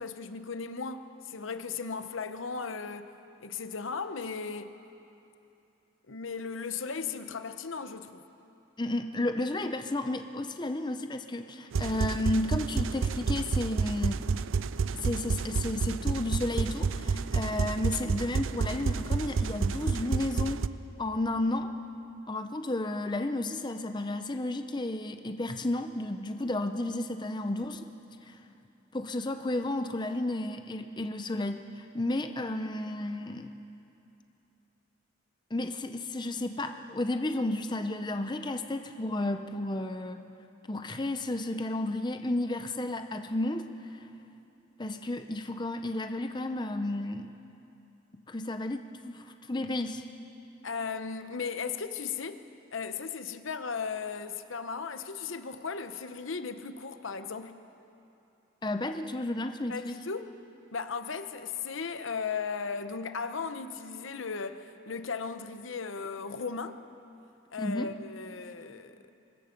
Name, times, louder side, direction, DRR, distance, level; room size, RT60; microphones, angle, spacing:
voice 1, 0.0-3.1 3.4-4.7 6.1-8.2 50.6-52.4 52.7-57.6 59.7-60.3 60.7-66.8 67.5-69.0, left 5 dB, 75° left, 10 dB, 0.9 m, -36 dB
voice 2, 8.8-14.3 14.9-20.6 21.0-21.7 22.3-27.8 28.3-28.4 28.9-33.5 35.5-40.3 40.7-44.0 44.8-47.3 48.3-50.0 58.6-60.0 67.6-67.9, left 1 dB, 20° left, 7 dB, 0.6 m, -32 dB
sound 1, 11.7-20.7, right 5 dB, 75° right, 0.5 m, -30 dB
24.5 x 21.0 x 5.2 m, 2.8 s
head